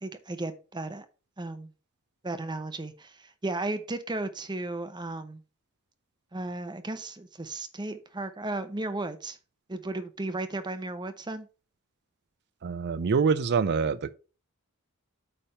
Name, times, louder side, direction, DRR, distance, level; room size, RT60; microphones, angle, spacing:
voice 1, 0.0-1.1 1.4-1.7 2.2-5.4 6.3-9.4 9.7-11.5, right 2 dB, 20° right, 0.8 m, -35 dB
voice 2, 12.6-14.1, right 5 dB, 50° right, 0.4 m, -25 dB
8.7 x 3.5 x 5.5 m
head